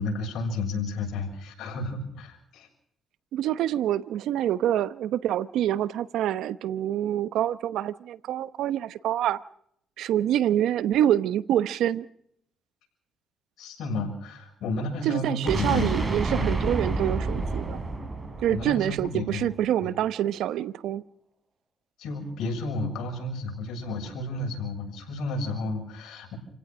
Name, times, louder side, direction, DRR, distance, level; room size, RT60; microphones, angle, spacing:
voice 1, 0.0-2.7 13.6-15.9 16.3-16.5 18.5-19.5 19.8-19.9 22.0-26.4, left 2 dB, 80° left, 2 dB, 7.1 m, -32 dB
voice 2, 3.3-9.4 10.0-12.1 15.0-17.8 18.4-21.0, right 11 dB, 85° right, 16 dB, 0.9 m, -26 dB
sound 1, 15.5-19.4, right 2 dB, 25° right, 5.4 m, -29 dB
29.0 x 16.5 x 6.2 m, 0.70 s
cardioid pair, 90°, 0 cm